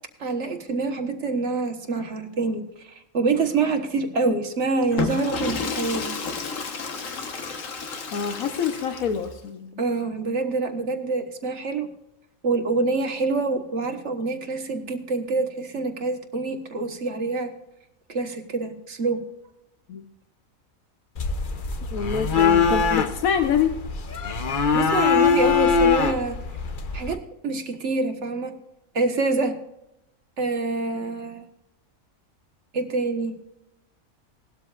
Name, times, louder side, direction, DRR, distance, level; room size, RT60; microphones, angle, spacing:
voice 1, 0.2-6.1 9.8-11.9 12.4-17.5 18.1-19.2 24.7-26.4 26.9-28.5 28.9-29.5 30.4-31.5 32.7-33.3, right 3 dB, 55° right, 5 dB, 1.6 m, -26 dB
Water / Toilet flush, 4.8-9.3, left 5 dB, 70° left, 1.6 m, -31 dB
voice 2, 8.1-9.8 19.9-20.0 21.9-23.7, left 7 dB, 90° left, 6 dB, 1.3 m, -26 dB
sound 1, 21.2-27.2, left 6 dB, 45° left, 0.9 m, -22 dB
18.0 x 12.5 x 2.4 m, 0.83 s
omnidirectional pair, 1.4 m